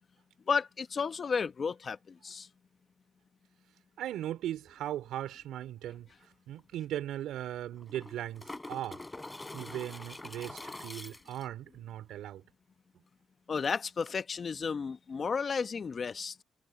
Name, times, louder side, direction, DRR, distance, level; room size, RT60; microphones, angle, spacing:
voice 1, 0.5-2.5 13.5-16.3, left 5 dB, 40° left, 1.2 m, -33 dB
voice 2, 4.0-6.1 6.5-9.0 9.5-12.4, right 12 dB, 80° right, 4.2 m, -38 dB
sound 1, 6.2-6.3 6.6-6.7 7.7-11.4 14.0-14.1, left 2 dB, 15° left, 5.9 m, -45 dB
cardioid pair, 90°, 0 cm